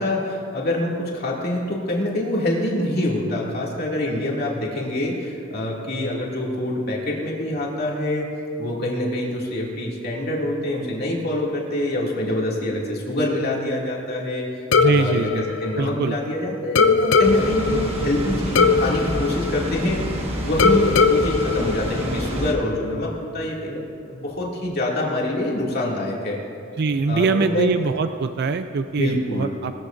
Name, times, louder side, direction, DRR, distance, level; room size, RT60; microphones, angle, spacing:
voice 1, 0.0-8.3 8.6-20.1 20.4-26.4 27.1-27.7 29.0-29.5, left 1 dB, 50° left, -3 dB, 2.4 m, -25 dB
sound 1, 14.7-16.3 16.8-20.1 20.6-22.6, left 5 dB, 70° left, 0.6 m, -20 dB
voice 2, 14.8-15.5 15.7-16.2 26.8-29.7, right 4 dB, 55° right, 9 dB, 0.4 m, -23 dB
Water, 17.2-22.5, equal, 30° right, 1.5 m, -28 dB
20.0 x 14.0 x 2.6 m, 2.5 s
head